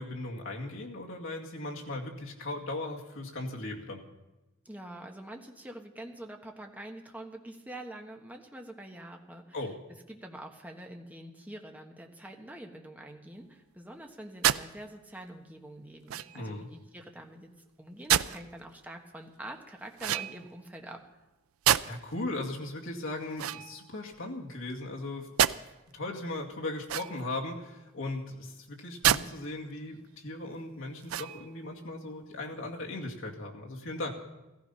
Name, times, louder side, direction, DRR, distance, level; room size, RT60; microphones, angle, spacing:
voice 1, 0.0-4.0 9.5-9.8 16.3-16.7 21.8-25.6 25.9-34.1, left 2 dB, 65° left, -1 dB, 2.2 m, -38 dB
voice 2, 4.6-9.6 10.1-17.5 17.8-21.0, right 1 dB, 10° right, 2 dB, 1.3 m, -45 dB
sound 1, 14.4-14.7 16.1-16.5 18.1-18.4 20.0-20.6 21.6-22.1 23.3-24.2 25.4-25.6 26.8-27.4 29.0-29.3 29.8-29.9 31.0-31.6, right 11 dB, 85° right, 0.4 m, -28 dB
15.0 x 15.0 x 5.6 m, 1.0 s
head